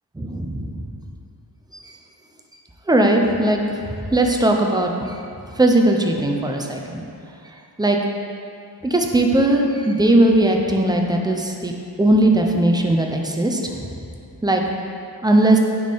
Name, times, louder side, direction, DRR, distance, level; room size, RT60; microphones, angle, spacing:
voice 1, 0.2-0.9 2.9-3.6 4.1-4.9 5.6-7.0 7.8-8.0 8.8-11.7 12.0-13.9 14.4-14.6 15.2-15.6, right 1 dB, 10° right, 1 dB, 0.6 m, -18 dB
9.3 x 4.3 x 3.6 m, 2.4 s
wide cardioid pair, 90°, 40 cm